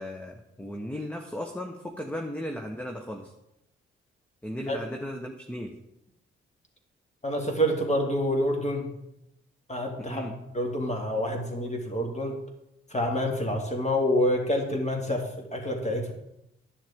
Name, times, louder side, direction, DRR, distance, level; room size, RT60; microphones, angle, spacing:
voice 1, 0.0-3.3 4.4-5.7 10.1-10.3, equal, 5° left, 2 dB, 1.0 m, -36 dB
voice 2, 7.2-9.0 9.7-12.4 12.9-16.1, equal, 20° left, 2 dB, 2.1 m, -27 dB
10.0 x 7.3 x 3.6 m, 0.85 s
hypercardioid pair, 40°, 30 cm